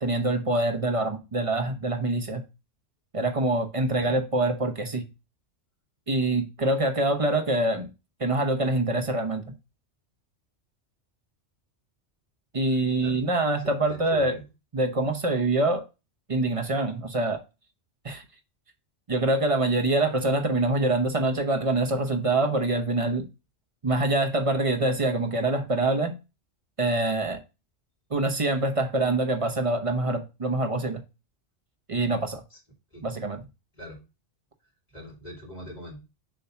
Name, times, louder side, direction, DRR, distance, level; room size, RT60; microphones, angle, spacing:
voice 1, 0.0-2.4 3.1-5.0 6.1-7.9 8.2-9.4 12.5-14.4 14.7-15.8 16.3-17.4 18.0-18.2 19.1-23.3 23.8-26.2 26.8-27.4 28.1-31.0 31.9-32.4 33.0-33.4, right 2 dB, 30° right, 0.9 m, -25 dB
voice 2, 13.9-14.5 32.5-32.6 32.9-33.0 33.7-34.0 34.9-36.0, equal, 35° left, 2.7 m, -42 dB
6.9 x 2.8 x 5.7 m
omnidirectional pair, 1.2 m